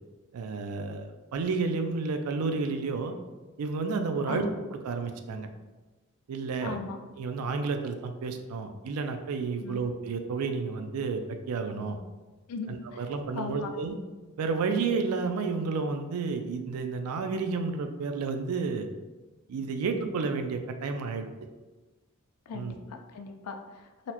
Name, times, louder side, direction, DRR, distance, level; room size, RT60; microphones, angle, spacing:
voice 1, 0.3-3.1 3.6-5.5 6.3-6.8 7.2-11.2 11.5-12.0 12.7-14.0 14.4-18.9 19.5-21.3 22.5-22.7, right 4 dB, 90° right, 6 dB, 0.4 m, -31 dB
voice 2, 6.6-7.0 9.6-9.8 12.5-13.0 13.3-13.7 22.5-24.1, left 5 dB, 90° left, 5 dB, 0.4 m, -38 dB
4.0 x 2.1 x 2.8 m, 1.2 s
head